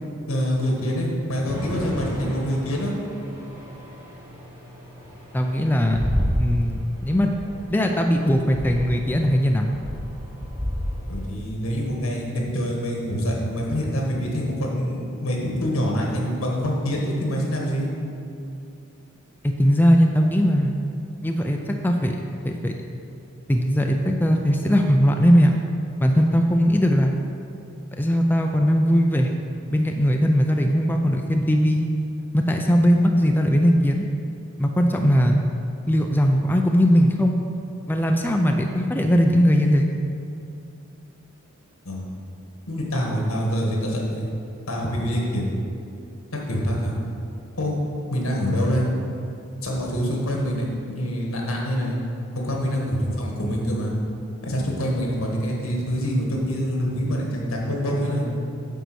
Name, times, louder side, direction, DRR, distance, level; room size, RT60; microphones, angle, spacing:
voice 1, 0.3-3.0 11.1-17.9 41.8-42.0 42.7-44.3 44.7-45.5 46.5-46.9 47.6-47.8 48.1-48.9 49.6-52.0 52.3-53.9 54.4-58.3, equal, 80° left, -1 dB, 1.6 m, -25 dB
sound 1, 1.5-11.3, equal, 10° right, 1.8 m, -31 dB
voice 2, 5.3-6.0 6.4-7.3 7.7-9.8 19.4-20.7 21.2-22.2 22.4-22.8 23.5-25.6 26.0-27.2 28.0-29.3 29.7-31.9 32.3-34.1 34.6-35.4 35.9-37.4 37.9-39.9, equal, 10° left, 3 dB, 0.4 m, -19 dB
9.3 x 4.0 x 6.2 m, 2.6 s
head